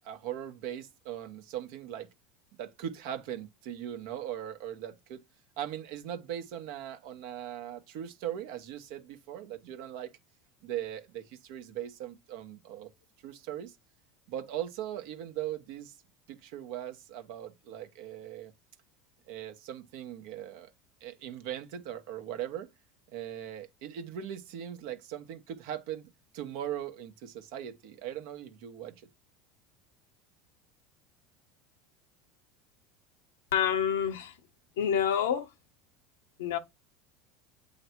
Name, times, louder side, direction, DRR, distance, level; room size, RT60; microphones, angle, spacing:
voice 1, 0.0-2.1 2.5-5.2 5.6-10.1 10.6-12.9 13.2-13.8 14.3-16.0 16.3-18.5 19.3-20.7 21.0-22.7 23.1-29.1, right 11 dB, 70° right, 1.2 m, -39 dB
voice 2, 33.5-34.3 34.8-35.5 36.4-36.6, left 8 dB, 90° left, 1.1 m, -27 dB
8.2 x 3.2 x 4.4 m
supercardioid pair, 105°, 0 cm